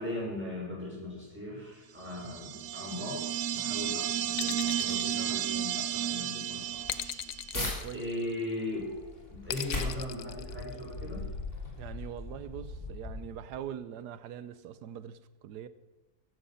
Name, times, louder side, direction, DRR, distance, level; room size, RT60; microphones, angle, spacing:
voice 1, 0.0-3.2 3.5-7.1 7.9-8.9 9.3-11.3, left 1 dB, 5° right, 5.5 m, -38 dB
sound 1, 2.1-7.5, right 11 dB, 65° right, 0.9 m, -33 dB
sound 2, 4.3-6.0 6.9-8.5 9.5-11.1, left 13 dB, 70° left, 0.9 m, -39 dB
sound 3, 6.8-7.8 8.3-13.6, left 2 dB, 45° left, 3.6 m, -39 dB
voice 2, 7.5-8.0 11.7-15.7, right 9 dB, 90° right, 1.3 m, -42 dB
13.5 x 11.5 x 5.7 m
omnidirectional pair, 1.7 m